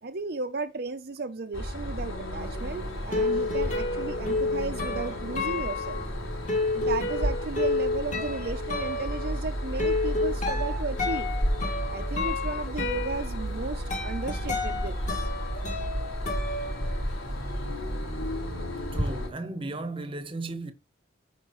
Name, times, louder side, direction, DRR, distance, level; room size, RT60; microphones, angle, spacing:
voice 1, 0.0-6.0 6.7-11.3 11.9-15.3, right 3 dB, 50° right, 0.6 m, -35 dB
sound 1, 1.5-19.3, equal, 85° left, 4.5 m, -33 dB
sound 2, 2.5-17.4 17.6-19.1, left 3 dB, 35° left, 2.5 m, -31 dB
sound 3, 10.0-18.0, equal, 70° left, 2.5 m, -37 dB
voice 2, 18.9-20.7, right 2 dB, 25° right, 1.0 m, -35 dB
14.0 x 5.0 x 3.1 m
head